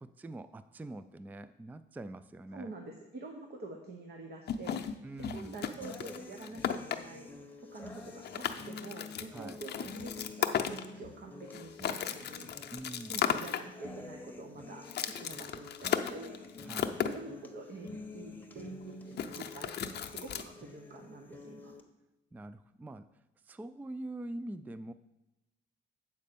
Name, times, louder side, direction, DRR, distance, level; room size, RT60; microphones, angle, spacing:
voice 1, 0.0-2.7 5.0-5.6 9.3-9.6 12.7-13.2 16.7-17.0 22.3-23.1 23.5-24.9, right 1 dB, 10° right, 13 dB, 0.3 m, -44 dB
voice 2, 2.5-4.8 5.2-7.3 7.7-12.7 13.1-16.4 17.0-21.7, right 2 dB, 55° right, 2 dB, 1.1 m, -47 dB
sound 1, 4.5-7.0 7.9-8.0 8.2-11.1 11.5-13.6 14.9-17.2 19.2-20.4, left 9 dB, 55° left, 0.6 m, -35 dB
sound 2, 5.8-21.8, left 2 dB, 10° left, 1.0 m, -48 dB
8.4 x 4.3 x 6.8 m, 0.97 s
cardioid pair, 90°, 20 cm